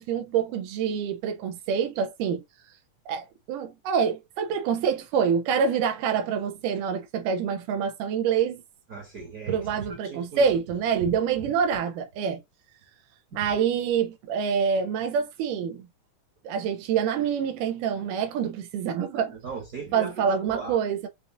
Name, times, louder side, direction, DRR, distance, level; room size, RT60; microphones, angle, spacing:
voice 1, 0.0-2.4 3.1-8.6 9.5-12.4 13.4-15.8 16.5-19.3 19.9-21.1, right 7 dB, 90° right, 2.3 m, -26 dB
voice 2, 8.9-10.5 11.0-11.1 13.4-13.5 19.1-20.8, right 5 dB, 45° right, 1.1 m, -38 dB
6.0 x 2.6 x 2.5 m
omnidirectional pair, 3.6 m